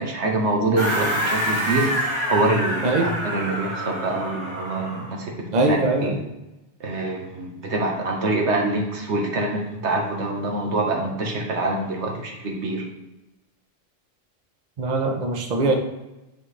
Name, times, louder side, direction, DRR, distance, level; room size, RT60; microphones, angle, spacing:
voice 1, 0.0-1.9 2.3-5.3 5.6-6.2 6.8-12.8, right 2 dB, 90° right, 0 dB, 1.5 m, -25 dB
sound 1, 0.8-5.2, right 1 dB, 25° right, 1.8 m, -27 dB
voice 2, 5.5-6.2 14.8-15.8, right 2 dB, 40° right, 2 dB, 0.9 m, -21 dB
9.1 x 3.7 x 3.2 m, 1.0 s
omnidirectional pair, 1.1 m